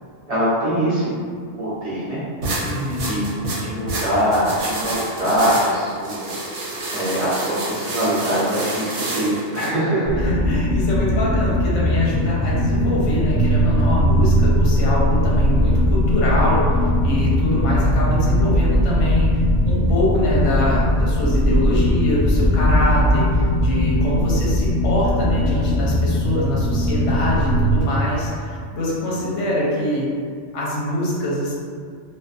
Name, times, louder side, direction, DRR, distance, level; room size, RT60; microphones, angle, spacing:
voice 1, 0.3-1.1 1.6-2.2 3.0-6.3 6.9-10.2, equal, 40° right, -11 dB, 0.7 m, -22 dB
sound 1, 2.4-9.7, right 1 dB, 70° right, 0.9 m, -28 dB
voice 2, 2.6-3.1 10.2-19.3 19.6-30.1 30.5-31.5, left 1 dB, 70° left, -6 dB, 1.0 m, -24 dB
sound 2, 10.1-27.8, equal, 10° left, 0.4 m, -19 dB
2.4 x 2.4 x 2.4 m, 2.1 s
omnidirectional pair, 1.3 m